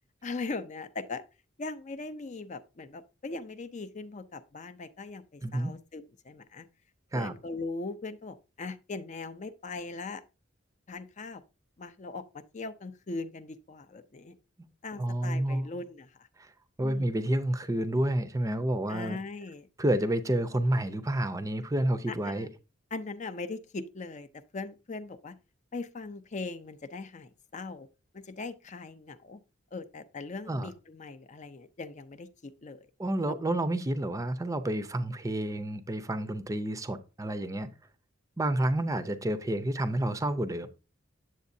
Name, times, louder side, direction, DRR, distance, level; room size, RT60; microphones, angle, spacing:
voice 1, 0.2-1.2 1.6-6.7 7.1-10.2 10.9-11.4 11.8-14.4 14.8-16.3 16.8-17.1 18.9-19.7 22.1-22.5 22.9-25.4 25.7-27.9 28.1-29.4 29.7-32.9 33.3-33.4, left 3 dB, 35° left, 0.5 m, -40 dB
voice 2, 5.4-5.7 7.1-7.3 15.0-15.7 16.4-16.5 16.8-19.2 19.8-22.5 30.5-30.7 33.0-37.7 38.4-40.7, right 1 dB, 15° right, 0.5 m, -29 dB
8.2 x 7.5 x 2.7 m
head